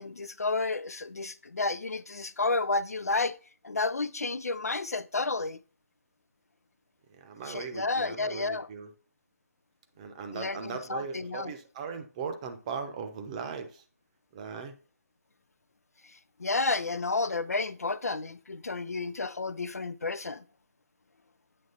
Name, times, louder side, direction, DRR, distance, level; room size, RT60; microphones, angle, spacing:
voice 1, 0.0-3.4 3.6-5.6 7.5-8.7 10.3-11.5 16.4-20.4, left 3 dB, 70° left, 0.5 m, -31 dB
voice 2, 7.1-8.9 10.0-13.8 14.3-14.7, right 5 dB, 25° right, 0.8 m, -38 dB
8.6 x 3.2 x 4.1 m
figure-of-eight pair, 145°, 9 cm